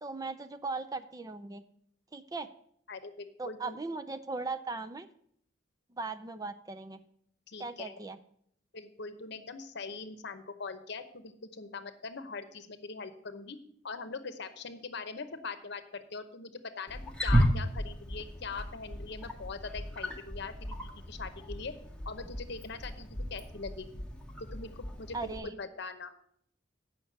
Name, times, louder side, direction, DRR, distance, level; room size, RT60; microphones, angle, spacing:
voice 1, 0.0-1.6 2.1-2.5 3.4-5.1 5.9-7.0 7.6-8.2 25.1-25.6, right 3 dB, 20° right, 9 dB, 0.5 m, -38 dB
voice 2, 2.9-3.8 7.5-8.0 8.7-13.6 13.8-21.7 22.1-24.0 24.5-26.1, left 4 dB, 65° left, 10 dB, 0.9 m, -42 dB
Wild animals, 16.9-25.4, equal, 5° left, 1.2 m, -34 dB
8.1 x 5.8 x 7.6 m, 0.67 s
head